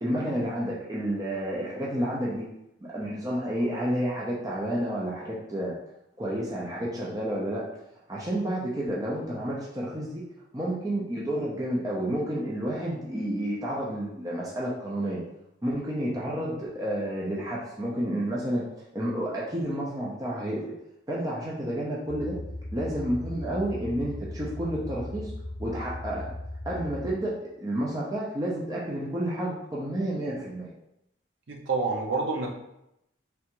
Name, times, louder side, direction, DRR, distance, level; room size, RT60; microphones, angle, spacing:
voice 1, 0.0-2.4 2.8-5.7 6.2-7.6 8.1-10.2 10.5-15.2 15.6-18.6 18.9-20.6 21.1-22.4 22.7-25.3 25.6-26.3 26.6-30.7, right 1 dB, 20° right, -5 dB, 0.4 m, -30 dB
sound 1, 22.1-27.2, left 1 dB, 5° left, 1.2 m, -38 dB
voice 2, 31.5-32.5, right 3 dB, 70° right, 0 dB, 0.6 m, -28 dB
3.3 x 2.5 x 2.9 m, 0.83 s
head